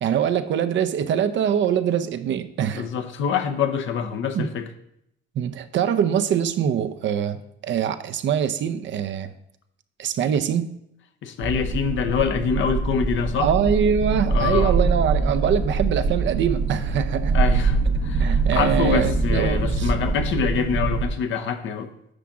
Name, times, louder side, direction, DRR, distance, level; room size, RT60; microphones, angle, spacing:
voice 1, 0.0-2.9 4.3-4.5 5.4-9.3 10.0-10.8 13.4-17.4 18.2-19.9, right 8 dB, 70° right, 0.7 m, -23 dB
voice 2, 2.7-4.7 11.2-13.5 14.3-14.8 17.3-21.9, left 7 dB, 75° left, 0.9 m, -25 dB
sound 1, 11.4-21.0, right 4 dB, 85° right, 1.5 m, -23 dB
9.9 x 6.0 x 3.7 m
cardioid pair, 90°, 20 cm